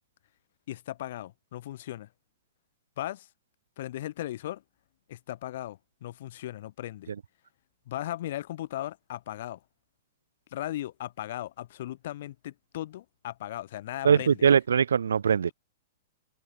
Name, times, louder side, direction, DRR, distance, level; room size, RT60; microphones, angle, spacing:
voice 1, 0.7-2.1 3.0-3.3 3.8-4.6 5.1-7.1 7.9-9.6 10.5-14.5, left 13 dB, 65° left, 5.8 m, -37 dB
voice 2, 14.0-15.5, right 7 dB, 85° right, 1.3 m, -21 dB
open air
hypercardioid pair, 120°, 0 cm